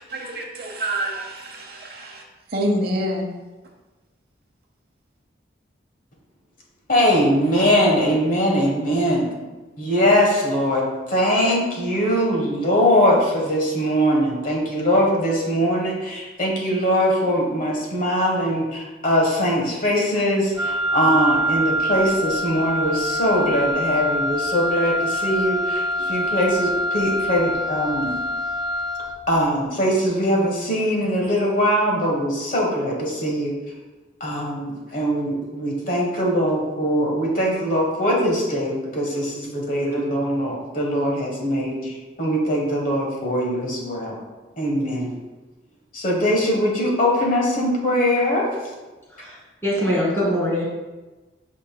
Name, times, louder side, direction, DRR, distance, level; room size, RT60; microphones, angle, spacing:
voice 1, 0.0-2.2 2.5-3.2, equal, 55° right, 1 dB, 0.8 m, -27 dB
voice 2, 6.9-9.3 9.8-28.1 29.3-33.5 34.2-44.2 44.6-45.1 45.9-48.5, equal, 45° left, -1 dB, 1.2 m, -21 dB
Wind instrument woodwind instrument, 20.6-29.3, equal, 20° right, 0.4 m, -25 dB
voice 3, 49.1-50.7, equal, 15° left, -5 dB, 1.7 m, -23 dB
8.0 x 5.3 x 2.2 m, 1.2 s
head